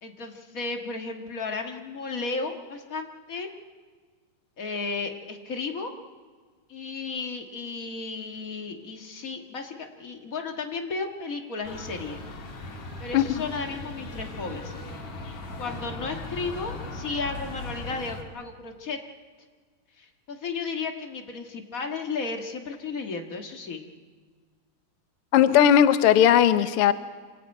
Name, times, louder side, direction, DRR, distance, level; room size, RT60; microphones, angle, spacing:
voice 1, 0.0-3.5 4.6-5.9 6.7-12.2 13.0-14.7 15.2-19.0 20.0-23.8, left 4 dB, 35° left, 4 dB, 1.4 m, -34 dB
sound 1, 11.6-18.2, left 2 dB, 55° left, 3.4 m, -38 dB
voice 2, 25.3-26.9, left 10 dB, 90° left, 11 dB, 1.2 m, -18 dB
27.0 x 18.0 x 9.0 m, 1.5 s
omnidirectional pair, 4.0 m